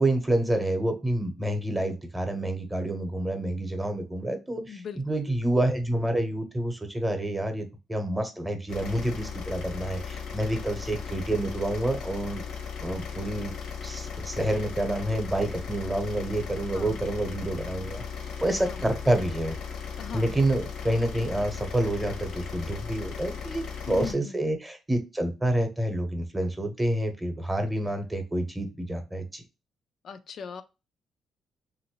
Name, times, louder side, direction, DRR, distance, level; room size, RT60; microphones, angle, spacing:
voice 1, 0.0-12.4 12.8-13.5 13.8-18.0 18.4-19.6 20.1-29.4, right 1 dB, 10° right, 5 dB, 0.8 m, -28 dB
voice 2, 4.7-5.0 5.3-5.4 16.7-17.0 18.2-18.8 20.0-20.3 23.9-24.4 30.0-30.6, left 6 dB, 60° left, 9 dB, 0.3 m, -40 dB
sound 1, 8.7-24.1, left 6 dB, 80° left, 0.8 m, -37 dB
3.1 x 2.6 x 2.9 m, 0.28 s
cardioid pair, 90°, 0 cm